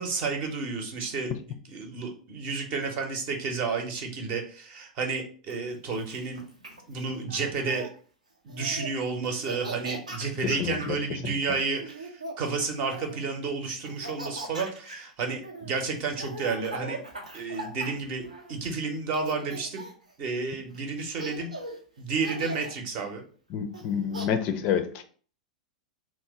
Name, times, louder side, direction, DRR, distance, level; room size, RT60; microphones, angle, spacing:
voice 1, 0.0-6.4 6.9-7.9 8.4-12.1 12.4-17.0 17.3-19.9 20.2-21.5 22.0-23.2, right 4 dB, 45° right, 4 dB, 0.7 m, -31 dB
Laughter, 5.5-7.9 8.5-8.9 9.2-11.0 11.8-13.3 13.8-18.7 19.1-20.1 20.7-20.8 21.1-21.8 22.2-22.7 23.7-24.3, right 1 dB, 85° right, 0.6 m, -40 dB
voice 2, 10.4-10.9 11.2-11.3 23.5-25.0, left 8 dB, 40° left, 9 dB, 0.4 m, -28 dB
3.0 x 2.1 x 3.5 m, 0.43 s
figure-of-eight pair, 95°, 4 cm